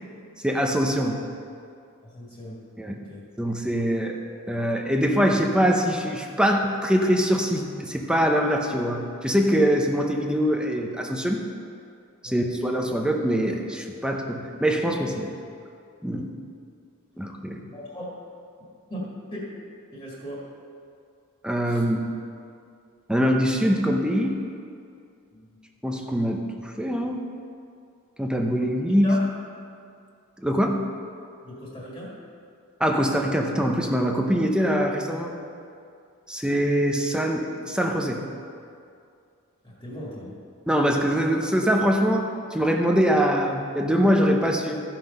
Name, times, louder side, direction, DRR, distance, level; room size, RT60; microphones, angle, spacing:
voice 1, 0.4-1.2 2.8-3.0 3.4-4.2 4.5-11.4 12.2-15.3 16.0-16.3 17.2-17.6 21.4-22.1 23.1-24.4 25.8-27.2 28.2-29.2 30.4-30.8 32.8-35.3 36.3-38.2 40.7-44.8, equal, 5° right, 2 dB, 0.7 m, -23 dB
voice 2, 2.0-2.6 2.9-3.2 12.2-12.5 17.7-18.2 18.9-19.6 19.9-20.5 21.7-21.8 25.3-25.6 29.0-29.2 31.4-32.2 39.6-40.4, left 1 dB, 20° left, -6 dB, 1.9 m, -38 dB
14.0 x 5.8 x 5.4 m, 2.4 s
head